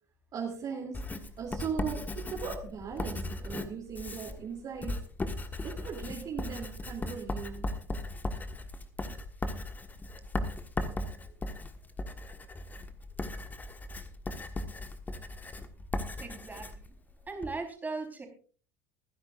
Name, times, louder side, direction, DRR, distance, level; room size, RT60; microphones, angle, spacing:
voice 1, 0.3-1.0 1.4-5.0 5.6-7.7, right 6 dB, 40° right, 0 dB, 2.9 m, -38 dB
Writing, 0.9-17.6, left 2 dB, 20° left, 1.4 m, -37 dB
voice 2, 16.2-16.9 17.3-18.3, right 3 dB, 15° right, 3 dB, 4.3 m, -38 dB
25.0 x 10.0 x 2.5 m, 0.40 s
figure-of-eight pair, 65°, 10 cm